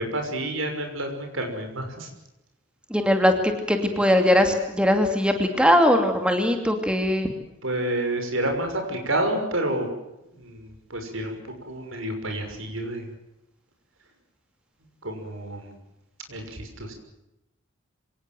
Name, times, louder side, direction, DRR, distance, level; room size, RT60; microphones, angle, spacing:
voice 1, 0.0-2.1 7.6-9.9 10.3-11.4 11.7-13.1 15.0-15.7 16.3-16.9, right 1 dB, 70° right, 5 dB, 6.1 m, -29 dB
voice 2, 2.9-3.3 3.7-7.3, equal, 5° right, 6 dB, 2.5 m, -20 dB
26.5 x 18.5 x 7.7 m, 0.88 s
head